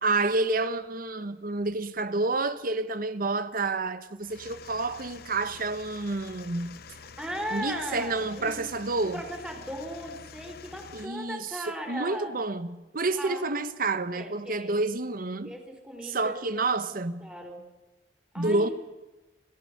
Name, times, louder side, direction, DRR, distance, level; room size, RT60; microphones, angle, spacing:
voice 1, 0.0-6.8 7.5-9.2 10.9-11.5 11.9-15.5 16.0-17.3 18.3-18.7, right 3 dB, 50° right, 1.2 m, -29 dB
sound 1, 4.2-11.1, left 5 dB, 55° left, 0.8 m, -47 dB
voice 2, 7.2-8.6 9.1-12.3 13.2-13.6 14.1-14.8 15.4-16.3 17.2-17.6 18.3-18.7, equal, 5° right, 4.2 m, -37 dB
29.5 x 14.5 x 6.6 m
head